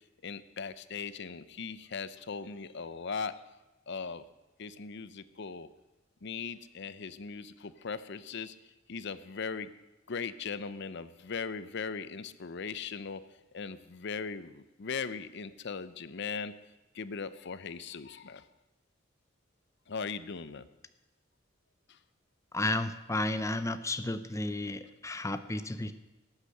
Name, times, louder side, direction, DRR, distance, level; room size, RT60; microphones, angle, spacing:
voice 1, 0.2-3.4 3.9-4.2 4.6-5.7 6.2-8.5 8.9-9.7 10.1-16.5 16.9-18.5 19.9-20.7 21.9-22.0, left 5 dB, 60° left, 14 dB, 0.7 m, -39 dB
voice 2, 22.5-25.9, left 2 dB, 15° left, 10 dB, 0.6 m, -32 dB
18.0 x 8.3 x 6.6 m, 1.1 s
head